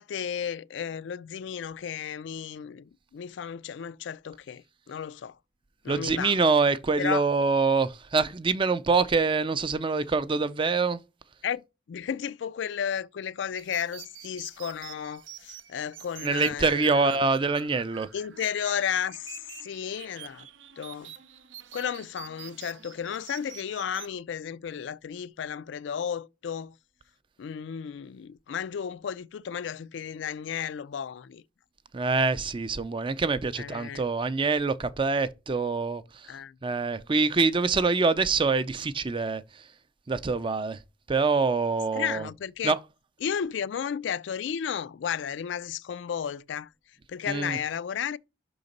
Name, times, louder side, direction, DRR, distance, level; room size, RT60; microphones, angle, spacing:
voice 1, 0.0-5.4 5.8-6.4 7.0-7.2 11.4-11.6 11.9-17.2 18.1-20.5 20.8-21.1 21.7-26.8 27.4-31.4 33.6-34.0 36.3-36.5 42.0-42.8 43.2-46.7 47.1-48.2, left 8 dB, 65° left, 0.3 m, -33 dB
voice 2, 5.9-11.0 16.2-18.1 31.9-36.3 36.6-39.6 40.1-40.8 41.1-42.3 42.6-42.8 47.3-47.6, right 4 dB, 25° right, 0.4 m, -25 dB
sound 1, 13.5-24.1, right 10 dB, 75° right, 0.6 m, -47 dB
5.8 x 3.9 x 5.2 m
head